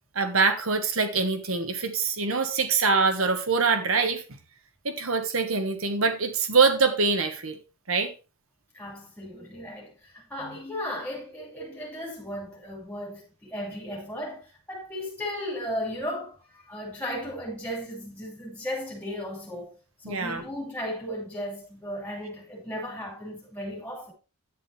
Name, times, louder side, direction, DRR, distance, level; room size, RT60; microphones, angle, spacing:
voice 1, 0.1-4.2 4.8-7.6 7.9-8.1 20.0-20.4, right 4 dB, 75° right, 1.4 m, -24 dB
voice 2, 8.7-19.8 20.1-24.1, equal, 5° left, 5.4 m, -35 dB
11.0 x 8.8 x 3.3 m
head